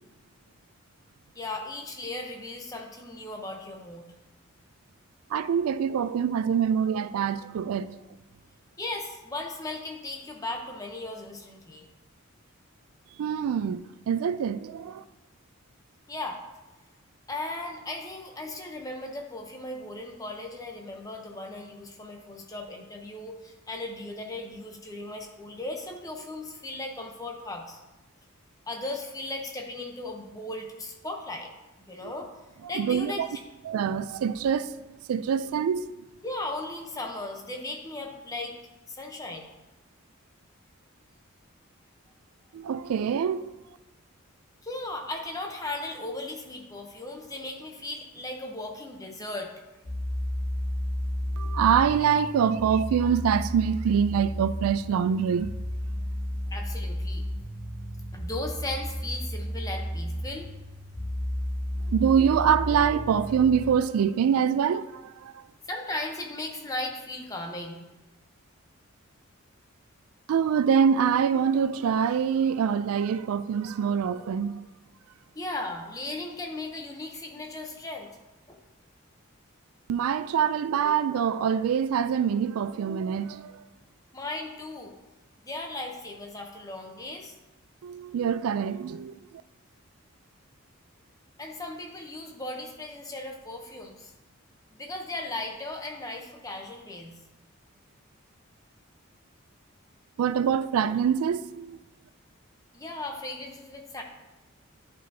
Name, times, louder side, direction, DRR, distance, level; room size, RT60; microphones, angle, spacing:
voice 1, 1.3-4.1 8.8-11.9 16.1-16.4 17.3-27.8 28.7-31.5 31.9-32.3 32.7-33.2 36.2-38.5 38.9-39.5 44.6-49.5 56.5-57.2 58.1-60.5 65.7-67.8 75.3-78.1 78.5-78.6 84.1-84.9 85.4-87.4 91.4-94.1 94.7-97.1 102.7-104.0, left 2 dB, 15° left, 0.7 m, -37 dB
voice 2, 5.3-8.0 13.2-15.0 32.0-32.1 32.7-33.3 33.7-34.7 35.1-35.9 42.5-43.5 51.4-55.5 61.9-65.4 70.3-74.6 79.9-83.6 87.8-89.2 100.2-101.8, right 7 dB, 80° right, 0.3 m, -25 dB
sound 1, 49.8-63.7, equal, 75° left, 1.2 m, -33 dB
10.5 x 5.1 x 2.7 m
head